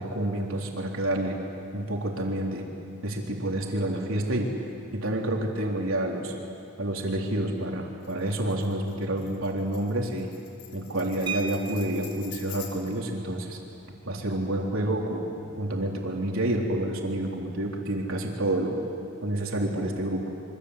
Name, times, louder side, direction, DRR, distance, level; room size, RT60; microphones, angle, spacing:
voice 1, 0.0-1.4 1.7-2.7 3.0-4.6 4.9-6.3 6.8-10.3 10.7-13.6 14.1-18.8 19.2-20.2, right 1 dB, 65° right, 0 dB, 3.8 m, -29 dB
Tambourine, 8.0-13.1, left 9 dB, 70° left, 4.0 m, -46 dB
sound 1, 11.3-12.3 13.8-13.9 14.2-14.4 14.8-15.1, right 7 dB, 20° right, 0.9 m, -37 dB
27.5 x 25.0 x 8.3 m, 2.6 s
head